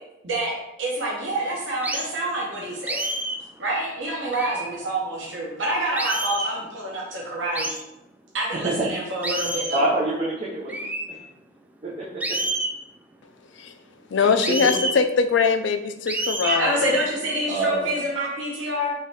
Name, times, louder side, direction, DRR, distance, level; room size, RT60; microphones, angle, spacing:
voice 1, 0.8-3.0 3.6-7.7 8.3-9.8 16.4-18.9, right 1 dB, 80° right, -4 dB, 1.0 m, -27 dB
sound 1, 1.8-2.1 2.9-3.4 4.3-4.7 6.0-6.6 7.6-7.8 9.2-9.9 10.7-11.1 12.2-12.8 14.4-15.0 16.1-16.6, right 1 dB, 10° right, 0.4 m, -28 dB
voice 2, 9.7-10.9 11.8-12.0 14.1-14.3 17.5-18.0, right 2 dB, 35° right, -6 dB, 0.7 m, -26 dB
voice 3, 14.1-16.8, left 5 dB, 70° left, 9 dB, 0.4 m, -22 dB
3.8 x 3.1 x 4.1 m, 0.92 s
head